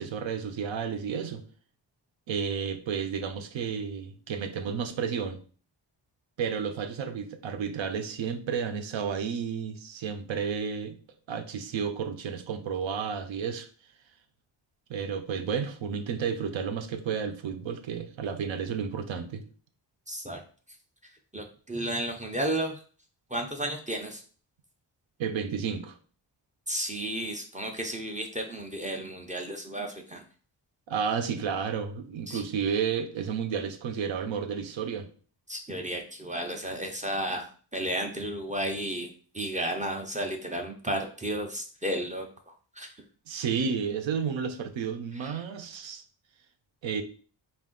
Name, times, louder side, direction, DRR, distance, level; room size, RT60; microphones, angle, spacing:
voice 1, 0.0-1.4 2.3-5.4 6.4-11.0 11.3-13.7 14.9-19.4 25.2-26.0 30.9-35.1 43.3-46.0 46.8-47.0, right 6 dB, 75° right, 0.7 m, -31 dB
voice 2, 20.1-20.4 21.3-22.8 23.3-24.2 26.7-30.2 32.3-32.4 35.5-39.1 39.3-42.3 42.8-42.9 45.2-45.3, right 1 dB, 15° right, 0.4 m, -33 dB
4.3 x 2.5 x 3.7 m
wide cardioid pair, 160°, 46 cm